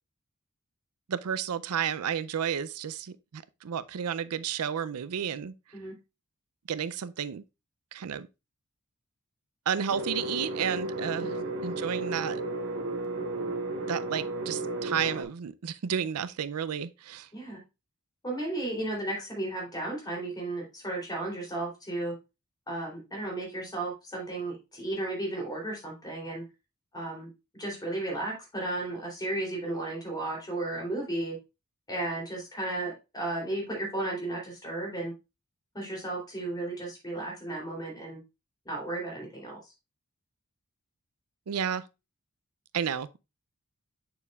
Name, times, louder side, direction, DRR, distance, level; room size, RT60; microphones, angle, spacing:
voice 1, 1.1-5.5 6.7-7.4 7.9-8.3 9.7-11.3 11.6-12.4 13.9-17.3 41.5-41.8 42.7-43.2, right 8 dB, 90° right, 0.5 m, -32 dB
sound 1, 9.9-15.2, right 2 dB, 65° right, 1.2 m, -33 dB
voice 2, 17.3-17.6 18.2-22.1 22.7-26.4 26.9-27.3 27.5-31.4 31.9-35.1 35.7-38.2 38.6-39.6, right 2 dB, 20° left, 3.1 m, -34 dB
7.0 x 6.8 x 2.4 m
head